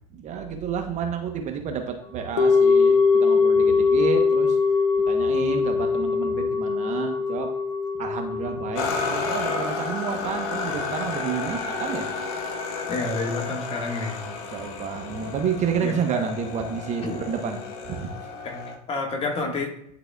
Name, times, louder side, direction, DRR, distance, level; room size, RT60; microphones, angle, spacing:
voice 1, 0.1-4.6 5.1-7.5 8.0-12.1 14.1-18.1, right 6 dB, 35° right, 5 dB, 0.9 m, -30 dB
sound 1, 2.4-12.7 12.9-13.0, left 4 dB, 85° left, 0.8 m, -23 dB
sound 2, 8.7-18.8, left 4 dB, 65° left, 1.2 m, -32 dB
voice 2, 12.9-14.2 15.8-15.9 17.0-17.1 18.4-19.7, left 3 dB, 30° left, 1 dB, 1.6 m, -29 dB
11.0 x 4.0 x 2.3 m, 0.72 s
hypercardioid pair, 105°, 20 cm